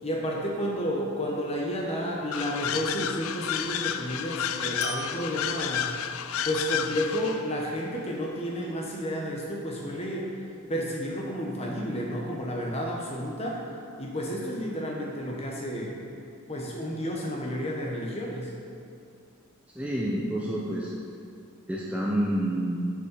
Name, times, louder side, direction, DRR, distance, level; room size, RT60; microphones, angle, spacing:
voice 1, 0.0-6.0 6.4-10.3 10.7-13.6 14.0-16.0 16.5-18.5, equal, 30° left, -2 dB, 1.1 m, -31 dB
sound 1, 1.2-1.9 4.8-6.2, left 1 dB, 50° left, 1.0 m, -41 dB
sound 2, 2.3-7.5, left 9 dB, 70° left, 0.4 m, -31 dB
voice 2, 19.8-20.9 21.7-22.8, right 1 dB, 5° right, -4 dB, 0.6 m, -28 dB
6.7 x 5.4 x 6.9 m, 2.4 s
head